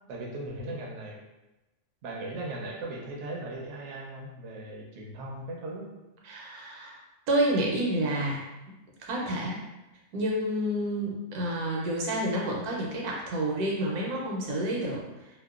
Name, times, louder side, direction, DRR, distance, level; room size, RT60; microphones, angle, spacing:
voice 1, 0.1-1.2 2.0-5.9, right 2 dB, 65° right, -2 dB, 0.8 m, -38 dB
voice 2, 6.2-7.0 7.3-8.4 9.0-9.6 10.1-15.0, right 1 dB, 85° right, -2 dB, 1.1 m, -29 dB
2.8 x 2.1 x 2.3 m, 1.0 s
omnidirectional pair, 1.6 m